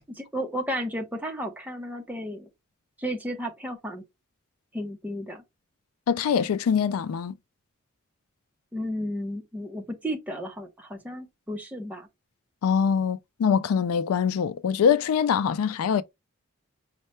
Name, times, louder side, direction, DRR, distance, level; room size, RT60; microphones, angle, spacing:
voice 1, 0.1-2.5 3.0-4.0 4.7-5.4 8.7-12.1, equal, 5° right, 0.7 m, -33 dB
voice 2, 6.1-7.3 12.6-16.0, left 7 dB, 90° left, 0.3 m, -23 dB
5.4 x 2.2 x 3.1 m
head